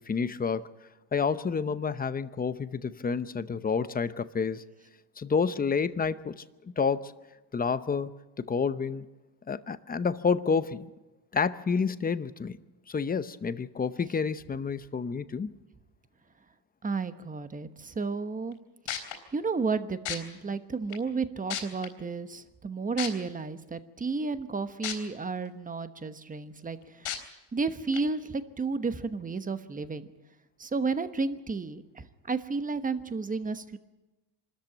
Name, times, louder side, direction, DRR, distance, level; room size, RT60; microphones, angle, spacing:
voice 1, 0.1-0.7 1.1-4.6 5.2-7.1 7.5-8.1 8.5-9.1 9.5-10.9 11.3-12.6 12.9-15.5, left 5 dB, 20° left, 13 dB, 0.8 m, -29 dB
voice 2, 16.8-18.6 19.3-27.2 27.5-30.1 30.6-33.8, right 4 dB, 15° right, 11 dB, 1.1 m, -32 dB
sound 1, 18.5-18.6 18.9-19.1 20.1-20.2 20.9-21.0 21.5-21.9 23.0-23.1 24.8-24.9 25.5-25.6 27.1-27.2 27.9-28.0, left 11 dB, 70° left, 3.9 m, -32 dB
25.0 x 13.5 x 9.1 m, 1.1 s
cardioid pair, 115°, 48 cm